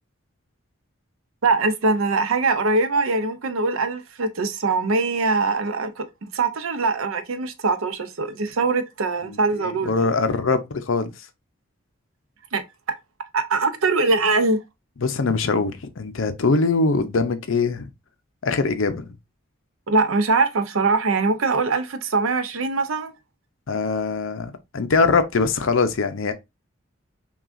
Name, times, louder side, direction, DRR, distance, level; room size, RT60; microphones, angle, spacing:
voice 1, 1.4-6.0 6.3-10.1 12.5-12.6 13.3-14.6 19.9-23.1, right 3 dB, 80° right, 0.6 m, -22 dB
voice 2, 9.2-11.1 15.0-17.9 18.4-19.1 23.7-26.3, left 4 dB, 70° left, 0.6 m, -22 dB
5.8 x 2.3 x 2.5 m
head